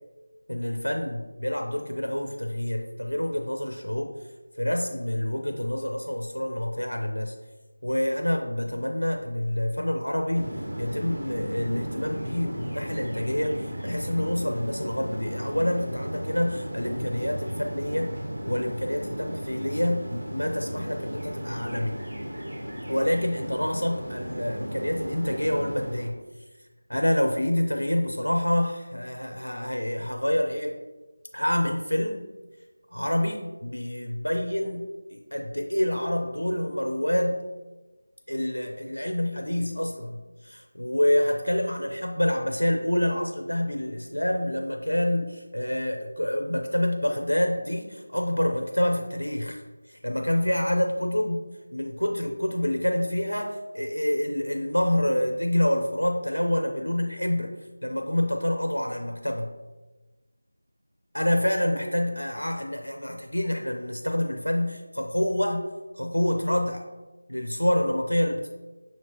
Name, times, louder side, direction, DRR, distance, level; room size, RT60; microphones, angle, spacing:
voice 1, 0.5-7.3 7.8-18.1 18.4-22.0 22.9-26.2 26.9-30.8 31.3-32.3 32.9-37.4 38.3-49.6 49.9-51.4 51.7-57.5 57.8-59.5 61.1-65.6 65.9-66.8 67.3-68.5, left 1 dB, 85° left, 3 dB, 0.5 m, -27 dB
sound 1, 10.3-26.1, equal, 55° right, 1.2 m, -35 dB
6.2 x 2.9 x 2.9 m, 1.2 s
figure-of-eight pair, 170°, 0 cm